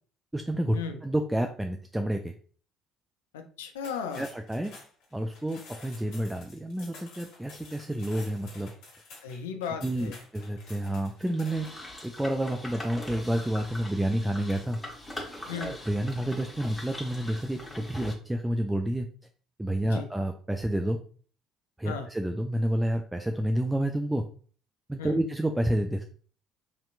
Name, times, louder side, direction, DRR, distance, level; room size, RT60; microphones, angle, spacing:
voice 1, 0.3-2.3 4.2-4.7 5.1-8.7 9.8-14.8 15.6-19.1 19.6-21.0 21.8-24.3 24.9-26.0, right 1 dB, 10° right, 4 dB, 0.3 m, -29 dB
voice 2, 3.3-4.3 9.2-10.2 15.5-15.8 19.8-20.1 21.8-22.1 25.0-25.2, left 6 dB, 80° left, 6 dB, 0.4 m, -36 dB
sound 1, 3.8-11.9, left 3 dB, 60° left, 0.9 m, -50 dB
sound 2, 11.3-18.1, left 1 dB, 10° left, 1.1 m, -42 dB
3.2 x 2.8 x 2.4 m, 0.43 s
hypercardioid pair, 55°, 0 cm